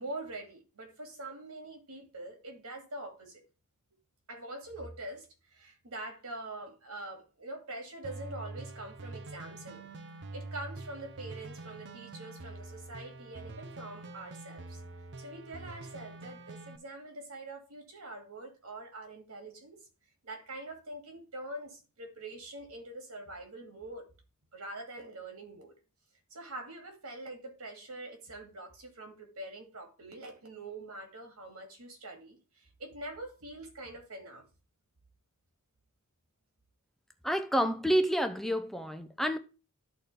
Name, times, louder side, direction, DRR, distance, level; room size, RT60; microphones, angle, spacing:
voice 1, 0.0-3.4 4.3-9.9 10.3-14.8 15.2-19.8 20.2-24.1 24.5-25.7 26.3-34.4, right 2 dB, 75° right, 2.3 m, -44 dB
sound 1, 8.0-16.8, right 2 dB, 55° right, 0.7 m, -45 dB
voice 2, 37.2-39.4, equal, ahead, 0.6 m, -29 dB
12.0 x 4.3 x 3.4 m
head